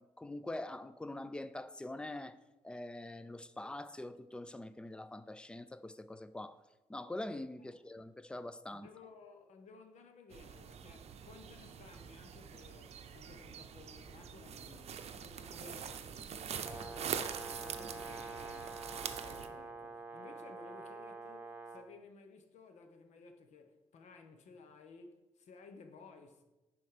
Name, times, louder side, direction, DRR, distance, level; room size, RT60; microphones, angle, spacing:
voice 1, 0.0-2.4 2.6-6.6 6.9-8.9, left 1 dB, 10° left, 0.4 m, -44 dB
voice 2, 8.7-26.4, left 4 dB, 75° left, 1.1 m, -57 dB
sound 1, 10.3-19.5, right 8 dB, 60° right, 0.6 m, -44 dB
Brass instrument, 16.6-21.9, right 3 dB, 15° right, 0.9 m, -46 dB
10.5 x 4.2 x 5.0 m
cardioid pair, 140°, 12 cm